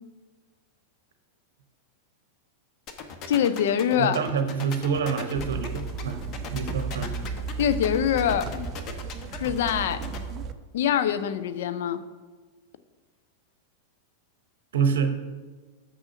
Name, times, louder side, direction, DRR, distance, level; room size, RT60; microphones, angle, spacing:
sound 1, 2.9-10.2, left 6 dB, 35° left, 0.9 m, -38 dB
voice 1, 3.3-4.2 7.6-8.7 9.3-10.0 10.7-12.0, left 9 dB, 55° left, 12 dB, 0.5 m, -24 dB
voice 2, 4.0-6.2 6.5-7.1 14.7-15.2, right 6 dB, 60° right, 8 dB, 0.7 m, -26 dB
sound 2, 5.4-10.5, right 5 dB, 30° right, 0.5 m, -34 dB
6.2 x 6.1 x 6.2 m, 1.4 s
figure-of-eight pair, 90°, 0 cm